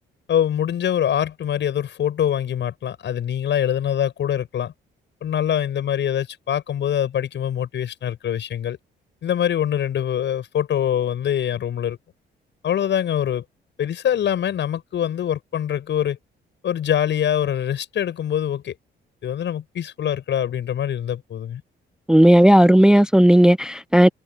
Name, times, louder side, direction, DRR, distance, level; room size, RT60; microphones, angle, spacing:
voice 1, 0.3-4.7 5.2-8.8 9.2-12.0 12.6-13.4 13.8-16.2 16.6-18.7 19.2-21.6, left 10 dB, 65° left, 6.8 m, -24 dB
voice 2, 22.1-24.1, right 1 dB, 5° right, 0.5 m, -13 dB
cardioid pair, 90°, 20 cm